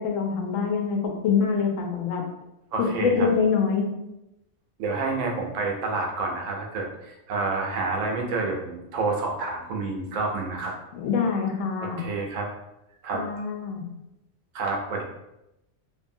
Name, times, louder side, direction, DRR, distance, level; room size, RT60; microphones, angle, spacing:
voice 1, 0.0-2.2 3.0-3.9 10.9-12.1 13.1-13.9, left 5 dB, 85° left, 2 dB, 1.0 m, -25 dB
voice 2, 2.7-3.3 4.8-10.8 11.8-12.5 13.0-13.2 14.5-15.0, right 3 dB, 80° right, 1 dB, 1.0 m, -29 dB
2.6 x 2.5 x 2.6 m, 0.89 s
omnidirectional pair, 1.3 m